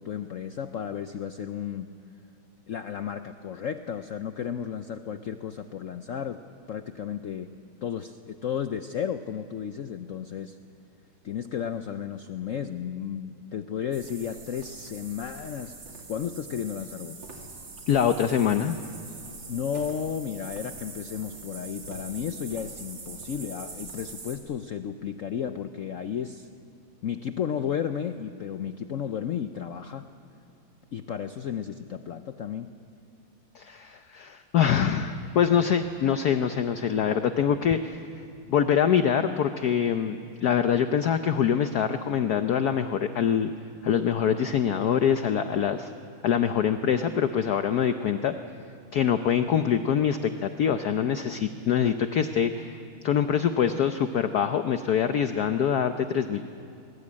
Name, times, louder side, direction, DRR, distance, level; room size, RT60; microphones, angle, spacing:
voice 1, 0.0-1.9 2.7-6.4 6.7-10.6 11.2-15.8 16.1-17.2 19.5-26.5 27.0-30.1 30.9-32.8, left 8 dB, 85° left, 9 dB, 0.7 m, -33 dB
sound 1, 13.9-24.4, right 3 dB, 65° right, 3.4 m, -43 dB
voice 2, 17.9-18.8 33.5-38.0 38.5-43.5 43.8-45.9 46.2-48.3 48.9-52.8 53.0-56.4, left 8 dB, 60° left, 8 dB, 1.1 m, -24 dB
22.5 x 22.0 x 8.6 m, 2.6 s
omnidirectional pair, 2.2 m